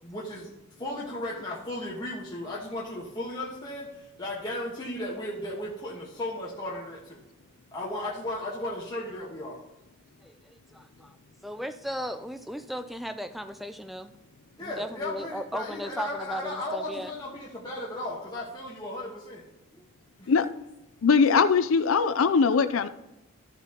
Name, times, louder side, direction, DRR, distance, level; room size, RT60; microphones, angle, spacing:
voice 1, 0.0-0.5 0.8-7.2 7.7-9.6 14.6-19.4 20.2-20.3, left 1 dB, 20° left, -5 dB, 1.3 m, -35 dB
voice 2, 10.2-11.2 11.4-14.1 14.6-17.1 19.8-19.9, equal, ahead, 8 dB, 0.4 m, -36 dB
voice 3, 21.0-22.9, left 5 dB, 75° left, 12 dB, 0.5 m, -21 dB
13.5 x 7.0 x 2.9 m, 0.99 s
head